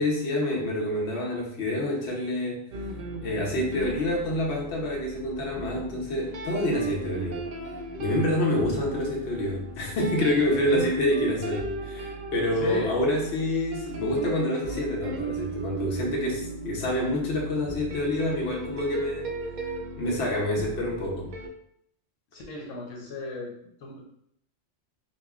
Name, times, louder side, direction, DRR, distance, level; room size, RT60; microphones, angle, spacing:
voice 1, 0.0-2.7 3.2-7.4 8.0-19.3 20.0-21.3, left 1 dB, 65° left, -2 dB, 1.1 m, -27 dB
sound 1, 2.7-21.5, right 2 dB, 60° right, 0.4 m, -36 dB
voice 2, 12.6-13.0 22.3-23.5 23.8-24.1, left 2 dB, 85° left, -2 dB, 1.1 m, -35 dB
5.2 x 2.0 x 2.3 m, 0.69 s
omnidirectional pair, 1.3 m